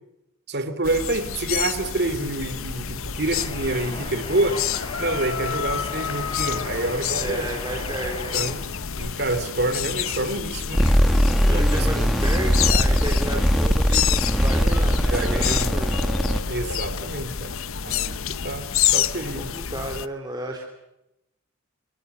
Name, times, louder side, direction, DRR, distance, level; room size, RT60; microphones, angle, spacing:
voice 1, 0.5-4.6 5.0-7.5 8.3-8.6 9.0-10.8 11.5-12.1 15.1-15.7 16.5-17.6 17.8-19.5, right 2 dB, 50° right, 11 dB, 3.0 m, -27 dB
sound 1, 0.8-20.1, left 9 dB, 75° left, 1.0 m, -29 dB
sound 2, 3.3-8.8, left 2 dB, 25° left, 4.6 m, -37 dB
voice 2, 7.1-8.4 11.4-16.1 19.4-20.7, right 1 dB, 20° right, 1 dB, 3.5 m, -32 dB
sound 3, 10.7-16.4, equal, ahead, 1.8 m, -20 dB
29.5 x 24.0 x 6.9 m, 0.88 s
head